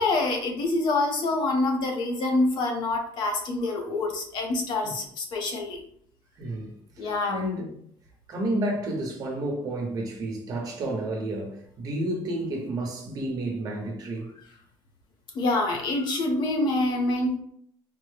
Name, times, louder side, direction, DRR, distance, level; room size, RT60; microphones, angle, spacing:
voice 1, 0.0-5.8 7.0-7.4 15.3-17.4, left 2 dB, 60° left, 0.8 m, -26 dB
voice 2, 6.4-7.7 8.3-14.3, right 1 dB, 45° right, 1.0 m, -31 dB
4.2 x 2.2 x 3.3 m
cardioid pair, 160°, 9 cm